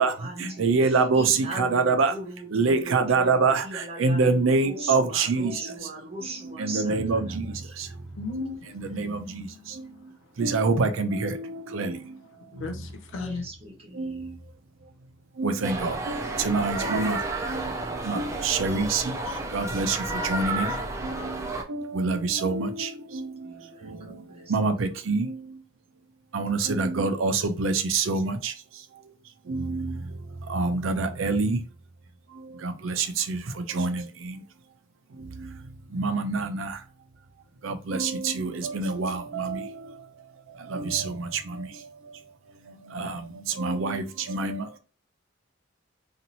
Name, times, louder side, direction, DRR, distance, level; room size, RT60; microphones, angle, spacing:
voice 1, 0.0-7.7 8.6-9.3 13.1-14.4 23.4-25.2, right 2 dB, 30° right, 0.9 m, -40 dB
voice 2, 0.6-2.1 2.5-5.5 6.6-7.5 8.3-9.5 10.4-12.0 14.0-14.3 15.4-17.2 17.5-17.7 18.1-19.1 19.5-20.0 20.2-20.7 21.0-21.3 21.7-23.3 23.8-24.0 24.5-25.4 26.3-28.5 29.5-30.0 30.5-31.6 32.6-34.4 35.9-36.7 37.6-39.7 40.7-41.3 41.6-41.7 42.9-43.2 43.6-44.7, right 4 dB, 75° right, 0.5 m, -26 dB
voice 3, 7.8-10.5 11.7-13.5, left 4 dB, 70° left, 0.4 m, -40 dB
sound 1, 15.6-21.6, right 2 dB, 15° right, 0.4 m, -31 dB
2.7 x 2.4 x 2.8 m
head